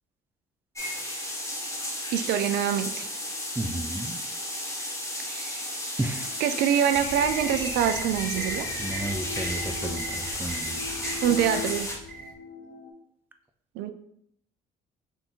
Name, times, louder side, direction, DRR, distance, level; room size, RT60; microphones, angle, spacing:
sound 1, 0.7-12.0, left 1 dB, 15° left, 1.3 m, -33 dB
voice 1, 2.1-3.1 5.2-5.8 6.4-8.7 11.0-11.9 13.8-13.9, right 9 dB, 75° right, 8 dB, 0.4 m, -25 dB
voice 2, 3.6-4.2 6.0-6.4 8.8-10.8, right 2 dB, 10° right, 6 dB, 0.5 m, -33 dB
sound 2, 6.2-12.9, left 4 dB, 65° left, 0.8 m, -41 dB
sound 3, 6.9-12.3, right 2 dB, 55° right, 0.8 m, -40 dB
3.5 x 2.7 x 4.3 m, 0.71 s
hypercardioid pair, 60°, 17 cm